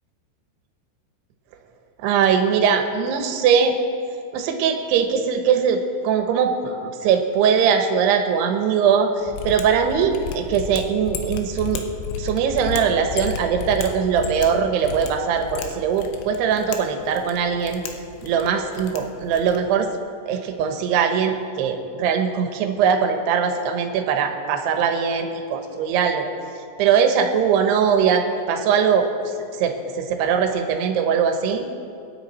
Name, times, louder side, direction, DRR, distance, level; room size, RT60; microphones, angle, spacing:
voice 1, 2.0-3.8 4.3-11.8 12.2-17.8 18.2-19.9 20.3-26.3 26.8-29.1 29.6-31.7, right 7 dB, 70° right, 5 dB, 2.8 m, -21 dB
Mechanisms, 9.2-19.7, left 6 dB, 75° left, 3.2 m, -34 dB
24.5 x 9.8 x 4.3 m, 2.4 s
omnidirectional pair, 5.6 m